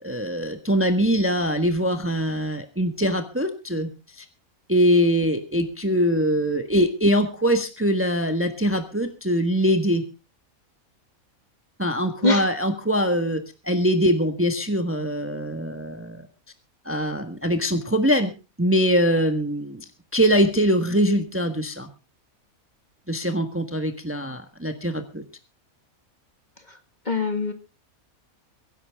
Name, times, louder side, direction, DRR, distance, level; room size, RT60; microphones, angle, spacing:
voice 1, 0.0-3.9 4.2-4.3 4.7-10.0 11.8-16.3 16.8-18.3 18.6-19.8 20.1-21.9 23.1-25.2, equal, 10° right, 7 dB, 1.4 m, -23 dB
voice 2, 27.1-27.5, left 2 dB, 30° left, 7 dB, 1.9 m, -22 dB
23.5 x 11.0 x 3.6 m, 0.31 s
omnidirectional pair, 1.5 m